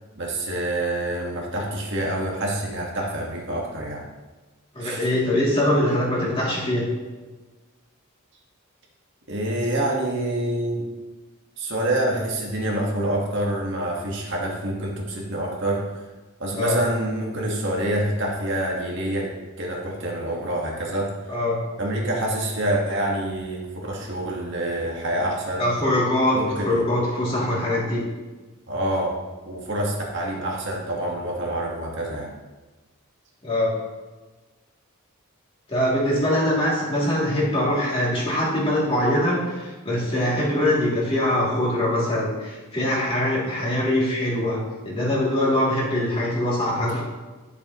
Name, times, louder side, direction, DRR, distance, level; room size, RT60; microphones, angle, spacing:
voice 1, 0.2-4.0 4.8-5.1 9.3-10.9 11.6-15.8 16.4-19.3 19.6-21.1 21.8-25.7 26.3-26.8 28.7-29.1 29.4-32.3 46.8-47.0, right 1 dB, 55° right, -2 dB, 1.7 m, -26 dB
voice 2, 4.7-6.8 16.5-16.8 21.3-21.6 25.6-28.0 33.4-33.7 35.7-44.6 44.8-47.0, left 1 dB, 25° left, -7 dB, 2.9 m, -23 dB
12.0 x 7.2 x 3.1 m, 1.2 s
head